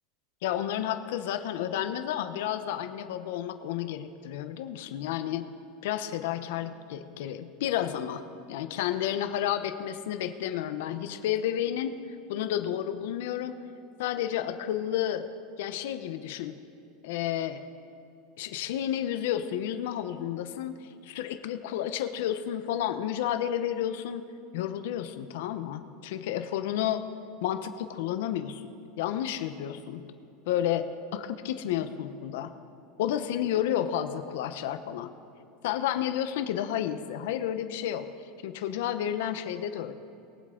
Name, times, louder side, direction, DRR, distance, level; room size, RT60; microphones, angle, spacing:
voice 1, 0.4-5.5 5.8-8.2 8.5-12.0 12.3-13.5 14.0-15.3 15.6-16.6 17.0-17.6 18.4-24.2 24.5-27.0 27.4-30.0 30.5-32.5 33.0-35.1 35.6-38.1 38.4-39.9, left 11 dB, 70° left, 10 dB, 0.9 m, -31 dB
22.0 x 7.8 x 3.9 m, 2.8 s
supercardioid pair, 165°, 0 cm